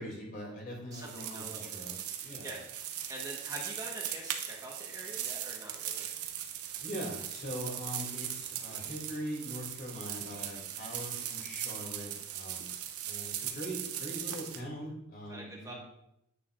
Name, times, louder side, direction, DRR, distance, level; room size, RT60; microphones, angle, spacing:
voice 1, 0.0-2.5 6.8-12.7 13.0-15.7, equal, 45° left, -2 dB, 2.9 m, -42 dB
voice 2, 0.9-1.7 2.4-2.6 3.1-6.1 15.3-15.7, right 1 dB, 15° right, -2 dB, 1.4 m, -45 dB
sound 1, 0.9-14.6, right 10 dB, 85° right, 0.9 m, -39 dB
9.8 x 8.7 x 2.5 m, 0.81 s
head